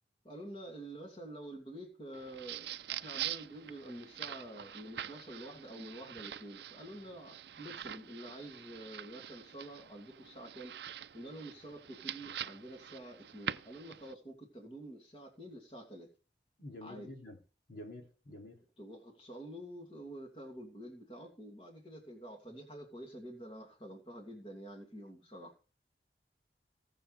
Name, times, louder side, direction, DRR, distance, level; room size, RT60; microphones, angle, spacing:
voice 1, 0.2-16.1 16.8-17.1 18.8-25.5, right 1 dB, 30° left, 2.5 m, -48 dB
sound 1, 2.1-14.1, right 10 dB, 70° right, 0.5 m, -44 dB
voice 2, 16.6-17.4 17.7-18.6, left 1 dB, 55° left, 2.6 m, -48 dB
19.5 x 7.0 x 3.4 m
head